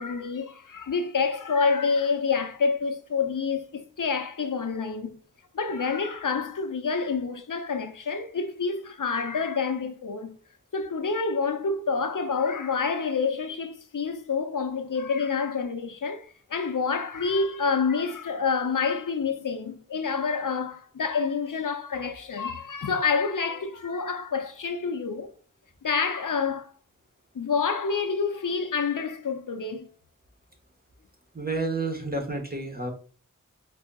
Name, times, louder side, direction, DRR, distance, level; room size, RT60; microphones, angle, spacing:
voice 1, 0.0-5.2 5.5-10.4 10.7-25.3 25.8-26.7 27.3-29.9, left 5 dB, 85° left, 0.7 m, -28 dB
voice 2, 31.3-32.9, right 3 dB, 30° right, 1.4 m, -30 dB
4.8 x 4.1 x 2.3 m
wide cardioid pair, 45°, 31 cm